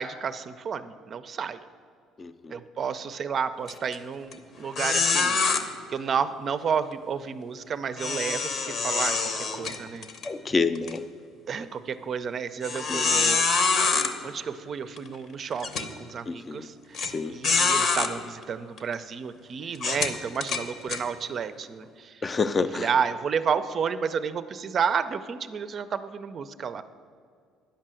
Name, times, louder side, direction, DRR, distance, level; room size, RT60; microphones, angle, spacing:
voice 1, 0.0-1.6 2.5-5.7 5.9-8.5 8.8-10.1 11.5-13.5 14.2-17.0 17.3-22.2 22.7-26.8, right 6 dB, 40° right, 12 dB, 0.5 m, -31 dB
voice 2, 2.2-2.6 10.2-11.0 12.9-13.4 16.3-16.7 17.0-17.4 22.2-22.9, left 4 dB, 25° left, 12 dB, 0.4 m, -28 dB
sound 1, 3.7-3.9 4.3-4.4 4.7-5.6 8.0-10.3 10.7-10.9 11.5-11.6 12.6-14.1 15.0-15.1 15.6-15.9 16.9-17.1 17.4-18.1 18.8-18.9 19.7-21.0, left 4 dB, 50° left, 0.9 m, -25 dB
10.5 x 5.6 x 7.5 m, 2.2 s
cardioid pair, 130°, 0 cm